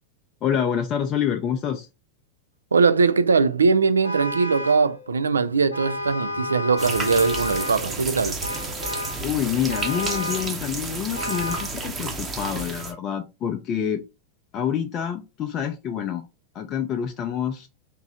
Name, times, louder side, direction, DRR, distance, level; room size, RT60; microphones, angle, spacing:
voice 1, 0.4-1.9 8.8-14.0 14.5-16.2 16.5-17.7, left 9 dB, 30° left, 0.5 m, -27 dB
voice 2, 2.7-8.4, right 4 dB, 75° right, 0.4 m, -21 dB
Vehicle horn car horn honking, 4.0-4.9 5.7-7.9 8.4-9.2 9.7-10.5 11.1-11.8, left 1 dB, 85° left, 0.7 m, -31 dB
Musical instrument, 4.9-11.7, left 6 dB, 55° left, 0.9 m, -48 dB
sound 1, 6.8-12.9, right 3 dB, 20° right, 0.8 m, -31 dB
3.7 x 2.9 x 2.7 m
figure-of-eight pair, 90°, 0 cm